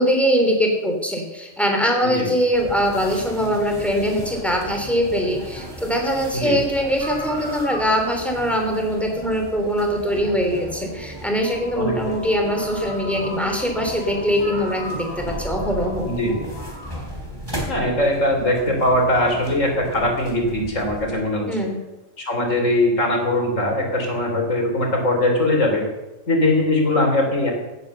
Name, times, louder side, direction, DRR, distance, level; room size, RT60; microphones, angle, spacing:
voice 1, 0.0-16.2 21.5-21.8, equal, ahead, 2 dB, 3.2 m, -22 dB
sound 1, 2.5-21.1, equal, 20° right, 3.2 m, -35 dB
sound 2, 7.0-8.3 9.7-9.8 12.0-12.1 12.5-13.7 14.0-14.1 14.4-15.4 16.4-17.0, equal, 70° right, 4.3 m, -36 dB
voice 2, 11.8-12.1 16.0-16.4 17.7-21.5 22.2-25.9 26.3-27.5, left 1 dB, 80° left, 2 dB, 3.8 m, -21 dB
16.5 x 9.2 x 6.9 m, 1.0 s
omnidirectional pair, 1.3 m